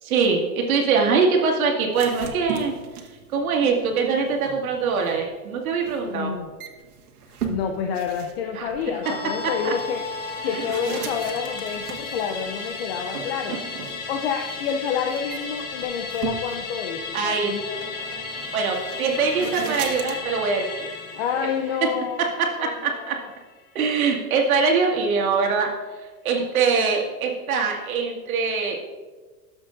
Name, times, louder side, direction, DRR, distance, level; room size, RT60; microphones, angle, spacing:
voice 1, 0.0-2.7 3.3-6.4 8.5-8.7 9.6-9.7 10.4-10.7 17.1-17.5 18.5-20.9 21.8-21.9 22.2-23.2 23.7-25.7 26.2-28.9, right 5 dB, 70° right, 0 dB, 2.1 m, -23 dB
sound 1, 1.9-20.1, right 7 dB, 85° right, 1.5 m, -38 dB
voice 2, 6.0-6.5 7.5-10.1 10.4-13.6 14.1-17.9 21.1-23.3, left 7 dB, 45° left, 4 dB, 0.6 m, -29 dB
Musical instrument, 9.0-23.7 24.0-24.1, left 4 dB, 25° left, 1.0 m, -35 dB
13.0 x 7.3 x 2.6 m, 1.3 s
supercardioid pair, 155°, 43 cm